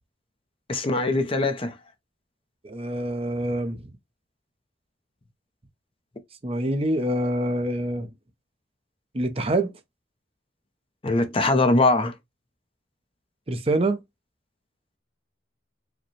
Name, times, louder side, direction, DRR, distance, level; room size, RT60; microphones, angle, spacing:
voice 1, 0.7-1.7 11.0-12.1, left 2 dB, 30° left, 0.6 m, -22 dB
voice 2, 2.6-3.9 6.4-8.1 9.1-9.7 13.5-14.0, right 1 dB, 30° right, 0.6 m, -25 dB
4.9 x 2.2 x 3.1 m
head